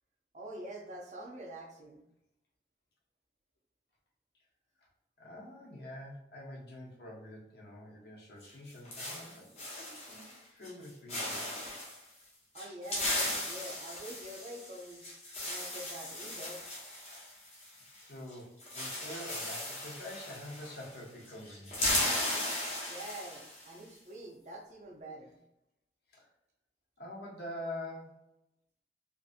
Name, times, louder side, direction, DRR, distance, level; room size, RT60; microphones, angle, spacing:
voice 1, 0.3-2.0 12.5-15.1 15.5-16.6 22.9-25.4, right 1 dB, 40° right, -1 dB, 0.5 m, -46 dB
voice 2, 5.2-11.4 18.0-21.9 26.1-26.3 27.0-28.3, left 1 dB, 65° left, -2 dB, 0.8 m, -46 dB
sound 1, 8.4-10.4 10.6-10.8 11.1-12.0 12.5-18.0 18.3-18.4 18.6-21.0 21.3-23.7, left 1 dB, 35° left, 0.9 m, -36 dB
2.6 x 2.5 x 2.4 m, 0.85 s
head